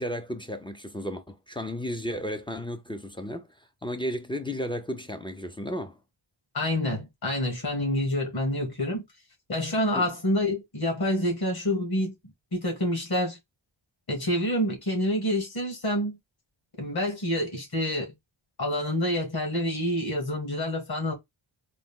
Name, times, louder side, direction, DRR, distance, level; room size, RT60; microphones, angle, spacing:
voice 1, 0.0-6.0 9.9-10.1, equal, 10° left, 0.4 m, -34 dB
voice 2, 6.5-9.0 9.5-12.1 12.5-13.4 14.1-16.2 16.8-18.1 18.6-21.1, left 1 dB, 50° left, 2.2 m, -27 dB
4.0 x 2.3 x 3.7 m
wide cardioid pair, 100°, 48 cm